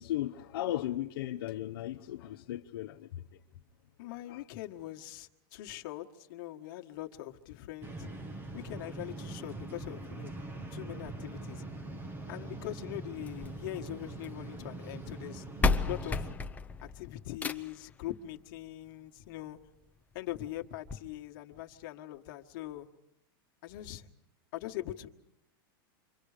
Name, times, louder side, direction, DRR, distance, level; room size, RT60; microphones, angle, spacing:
voice 1, 0.0-3.2 4.3-4.4, left 13 dB, 75° left, 0.9 m, -36 dB
voice 2, 4.0-8.1 8.5-10.3 10.7-11.7 12.3-15.4 15.8-16.3 16.8-19.6 20.1-22.9 23.6-24.1 24.5-25.1, left 15 dB, 55° left, 1.6 m, -42 dB
sound 1, 7.8-16.3, right 2 dB, 15° right, 1.1 m, -43 dB
sound 2, 13.2-14.4 15.3-15.4 15.6-17.9 19.2-19.3 19.8-19.9 20.2-20.3 20.9-21.0, left 3 dB, 10° left, 0.8 m, -32 dB
28.0 x 25.0 x 5.1 m
supercardioid pair, 140°, 12 cm